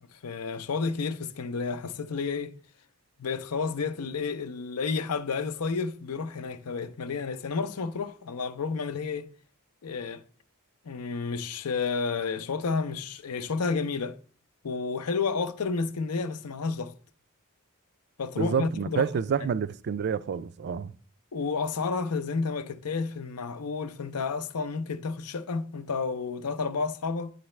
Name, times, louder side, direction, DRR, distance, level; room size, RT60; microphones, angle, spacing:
voice 1, 0.1-2.5 3.2-9.3 9.8-10.2 10.8-14.2 14.6-16.9 18.2-19.1 21.3-27.3, left 4 dB, 85° left, 0.6 m, -31 dB
voice 2, 18.4-20.9, right 6 dB, 50° right, 0.3 m, -28 dB
9.9 x 3.9 x 3.2 m
head